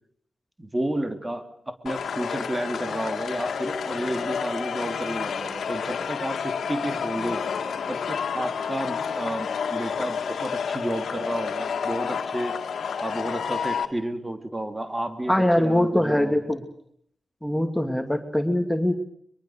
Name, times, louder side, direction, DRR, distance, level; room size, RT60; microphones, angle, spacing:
voice 1, 0.6-7.4 7.9-12.6 13.0-16.5, right 1 dB, 20° right, 7 dB, 3.3 m, -31 dB
sound 1, 1.9-13.9, left 6 dB, 75° left, 2.1 m, -30 dB
voice 2, 15.3-16.6 17.4-18.9, left 1 dB, 5° left, 6 dB, 2.7 m, -22 dB
23.5 x 23.0 x 6.5 m, 0.68 s
cardioid pair, 50°, 0 cm